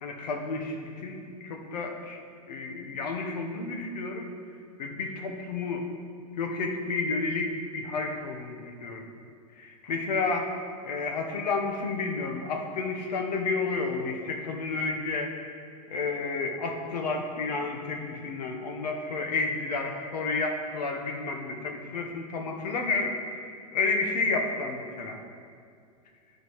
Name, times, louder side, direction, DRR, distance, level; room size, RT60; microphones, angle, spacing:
voice 1, 0.0-2.2 2.5-4.3 4.8-5.8 6.4-9.0 9.6-10.5 10.8-15.3 15.9-25.2, left 3 dB, 80° left, 3 dB, 1.1 m, -31 dB
11.5 x 5.1 x 3.1 m, 2.3 s
hypercardioid pair, 130°, 21 cm